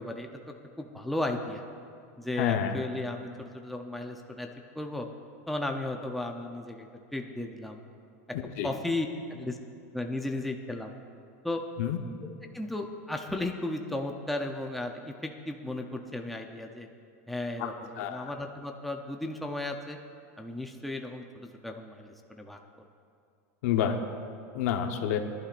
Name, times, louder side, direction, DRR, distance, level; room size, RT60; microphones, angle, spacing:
voice 1, 0.0-1.6 2.2-4.5 4.7-5.1 5.5-7.8 8.6-9.6 9.9-10.9 11.4-11.6 12.5-16.9 17.3-20.0 20.4-22.6, left 2 dB, ahead, 2 dB, 0.7 m, -35 dB
voice 2, 2.4-2.8 8.6-8.7 11.8-12.0 17.6-17.7 18.0-18.3 23.6-24.0 24.5-25.2, left 9 dB, 70° left, 5 dB, 1.1 m, -28 dB
22.0 x 11.5 x 2.6 m, 2.4 s
supercardioid pair, 140°, 8 cm